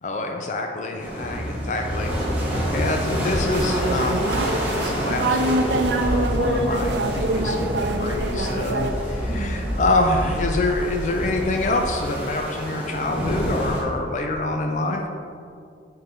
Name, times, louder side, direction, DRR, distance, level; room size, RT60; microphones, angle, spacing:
voice 1, 0.0-15.1, left 2 dB, 40° left, 3 dB, 0.4 m, -26 dB
sound 1, 1.0-13.8, equal, 10° right, 1.5 m, -27 dB
sound 2, 3.5-8.9, right 2 dB, 75° right, 0.6 m, -25 dB
7.7 x 3.8 x 4.4 m, 2.4 s
head